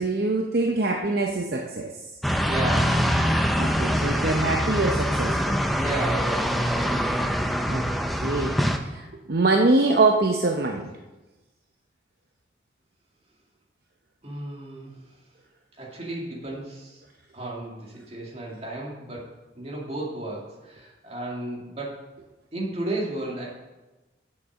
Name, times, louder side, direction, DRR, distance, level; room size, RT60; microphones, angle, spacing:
voice 1, 0.0-2.0 3.5-5.6 7.7-10.9, right 2 dB, 55° right, 3 dB, 0.7 m, -24 dB
sound 1, 2.2-8.8, equal, ahead, 0.5 m, -24 dB
voice 2, 2.5-3.0 5.7-6.9 14.2-15.0 15.8-17.0 17.3-19.3 19.5-22.0 22.5-23.5, right 2 dB, 35° right, -3 dB, 2.3 m, -33 dB
7.9 x 7.2 x 6.4 m, 1.1 s
head